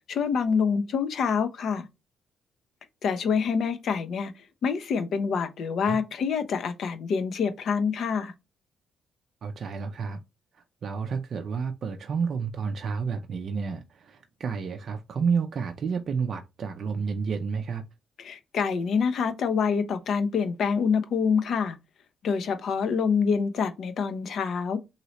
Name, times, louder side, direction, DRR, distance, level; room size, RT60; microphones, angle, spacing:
voice 1, 0.1-1.9 3.0-4.3 4.6-8.3 18.2-21.8 22.2-24.8, left 6 dB, 65° left, 0.7 m, -26 dB
voice 2, 9.4-10.2 10.5-17.9, right 5 dB, 55° right, 0.4 m, -30 dB
3.0 x 2.8 x 2.8 m
cardioid pair, 75°, 0 cm